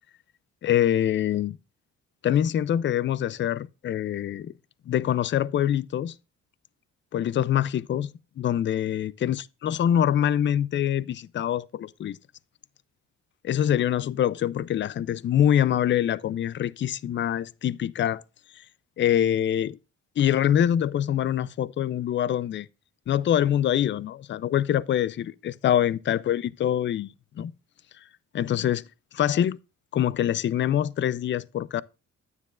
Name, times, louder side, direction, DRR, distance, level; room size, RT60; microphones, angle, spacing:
voice 1, 0.6-1.6 2.2-4.5 4.9-6.1 7.1-8.1 8.4-12.2 13.4-18.2 18.6-18.7 19.0-19.8 20.2-22.7 23.1-27.5 28.3-28.8 29.1-29.6 29.9-31.8, left 10 dB, 40° left, 0.4 m, -25 dB
9.5 x 9.5 x 2.4 m
cardioid pair, 90°, 30 cm